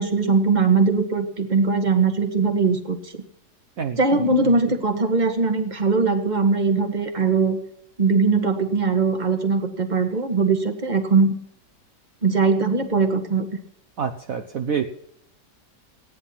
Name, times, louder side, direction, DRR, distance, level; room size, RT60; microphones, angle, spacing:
voice 1, 0.0-3.2 4.0-7.6 8.0-11.3 12.2-13.5, right 4 dB, 25° right, 5 dB, 1.7 m, -20 dB
voice 2, 3.8-4.3 14.0-14.9, right 7 dB, 55° right, 6 dB, 1.3 m, -27 dB
17.5 x 10.0 x 5.8 m, 0.71 s
omnidirectional pair, 1.8 m